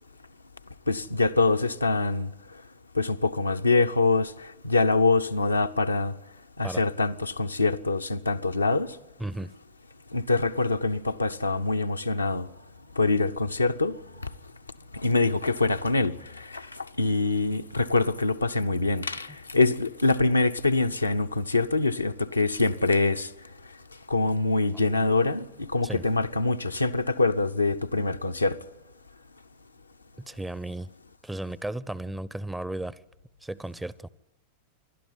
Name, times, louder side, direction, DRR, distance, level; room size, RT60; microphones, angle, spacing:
voice 1, 0.9-2.3 3.0-4.3 4.6-6.1 6.6-8.9 10.1-12.5 13.0-14.0 14.9-23.3 24.1-28.6, left 3 dB, 85° left, 0.8 m, -24 dB
voice 2, 9.2-9.5 25.8-26.0 30.2-30.9 31.2-33.0 33.4-34.1, right 1 dB, 5° right, 0.7 m, -34 dB
27.0 x 12.0 x 9.8 m
figure-of-eight pair, 90°, 0 cm